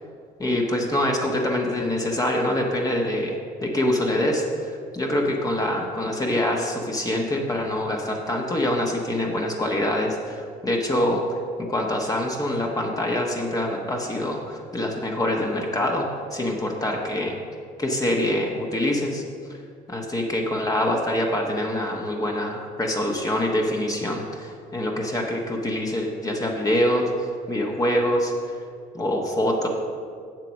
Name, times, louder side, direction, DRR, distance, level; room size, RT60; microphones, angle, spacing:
voice 1, 0.4-3.4 3.6-11.2 11.6-17.4 17.8-19.2 19.9-28.6 28.9-29.7, left 1 dB, 20° left, 0 dB, 1.1 m, -25 dB
7.6 x 7.6 x 6.3 m, 2.2 s
cardioid pair, 110°, 17 cm